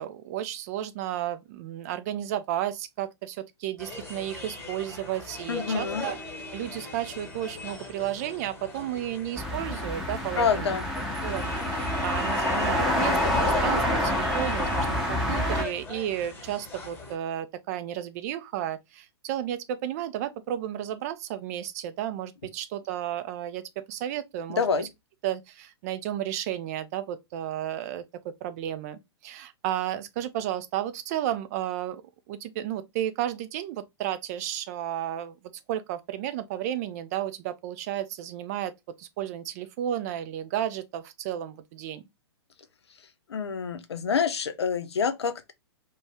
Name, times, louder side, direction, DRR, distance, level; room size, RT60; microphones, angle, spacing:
voice 1, 0.0-6.2 6.5-10.8 11.2-24.9 25.2-32.0 32.3-35.3 35.7-38.7 39.0-42.0, right 11 dB, 35° right, 0.4 m, -33 dB
sound 1, 3.8-17.1, left 3 dB, 15° left, 1.2 m, -40 dB
voice 2, 5.5-6.1 10.4-10.8 24.5-24.9 43.3-45.5, left 6 dB, 70° left, 0.5 m, -27 dB
sound 2, 9.4-15.6, left 1 dB, ahead, 0.9 m, -27 dB
2.5 x 2.2 x 3.4 m
figure-of-eight pair, 115°, 14 cm